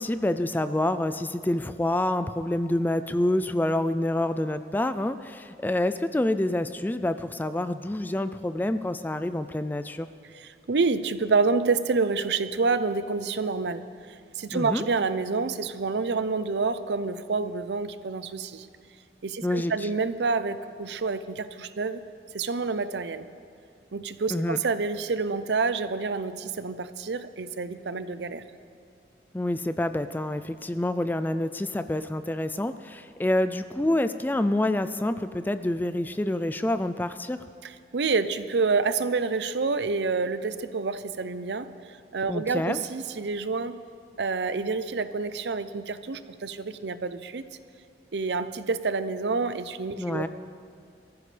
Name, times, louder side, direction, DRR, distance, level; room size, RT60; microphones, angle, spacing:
voice 1, 0.0-10.1 14.5-14.8 19.4-19.7 24.3-24.6 29.3-37.4 42.3-42.8 50.0-50.3, left 1 dB, 10° left, 11 dB, 0.3 m, -27 dB
voice 2, 10.3-18.7 19.2-22.0 22.3-23.3 23.9-28.4 37.6-43.8 44.2-47.4 48.1-50.3, right 4 dB, 75° right, 12 dB, 0.6 m, -28 dB
22.0 x 14.5 x 3.3 m, 2.3 s
head